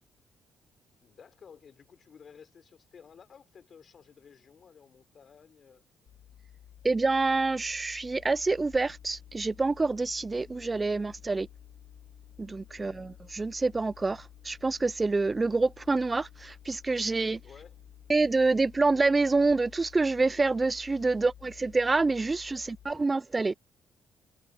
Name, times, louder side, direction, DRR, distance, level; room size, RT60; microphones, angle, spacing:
voice 1, 1.0-5.8 12.7-13.1 17.4-17.8 22.5-22.6 22.9-23.0, left 6 dB, 50° left, 3.9 m, -54 dB
sound 1, 6.1-22.9, left 11 dB, 80° left, 4.1 m, -52 dB
voice 2, 6.8-11.5 12.4-17.4 18.1-23.6, right 3 dB, 25° right, 0.3 m, -27 dB
sound 2, 8.7-9.9 10.4-21.2, right 6 dB, 50° right, 5.0 m, -68 dB
cardioid pair, 90°, 0 cm